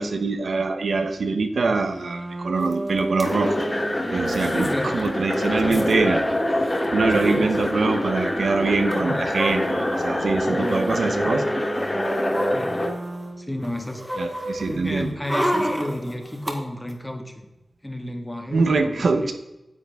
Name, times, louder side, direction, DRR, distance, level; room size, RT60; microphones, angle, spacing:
voice 1, 0.0-3.6 4.1-6.2 6.9-11.4 14.2-15.1 18.5-19.3, right 3 dB, 85° right, 6 dB, 0.9 m, -24 dB
sound 1, 1.8-7.5 8.2-13.5, right 2 dB, 45° right, 0.9 m, -32 dB
sound 2, 2.7-2.8 3.0-3.3 4.3-4.7 5.1-5.2 5.3-5.9 6.8-6.9 7.1-7.3 8.9-10.0 10.6-11.0 11.6-13.3 13.6-16.5 16.9-17.0, equal, 10° right, 1.8 m, -30 dB
sound 3, 3.2-12.9, left 1 dB, 35° left, 1.2 m, -26 dB
voice 2, 4.4-5.1 5.6-5.9 7.1-7.7 9.0-9.2 10.5-10.9 11.2-11.5 12.5-12.9 13.4-17.3 17.8-19.3, left 1 dB, 15° left, 3 dB, 1.7 m, -32 dB
9.6 x 7.5 x 3.5 m, 0.98 s
wide cardioid pair, 60°, 0 cm